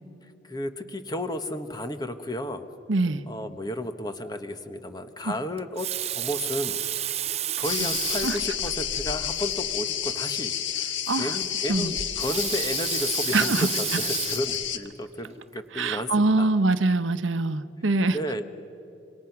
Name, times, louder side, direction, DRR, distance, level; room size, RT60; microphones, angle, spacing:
voice 1, 0.2-2.7 3.3-6.8 7.2-16.5 18.1-18.5, left 1 dB, 20° left, 8 dB, 1.2 m, -33 dB
voice 2, 2.9-3.2 7.8-7.9 8.2-8.4 11.1-11.3 11.7-11.9 13.3-13.7 15.7-18.2, right 3 dB, 80° right, 12 dB, 0.9 m, -23 dB
Water tap faucet, 5.6-8.5 9.3-9.4 9.7-9.8 12.0-14.6 15.2-15.4, right 12 dB, 35° right, 0.5 m, -31 dB
sound 1, 7.6-14.8, left 9 dB, 75° left, 1.4 m, -30 dB
27.0 x 24.5 x 6.0 m, 2.9 s
head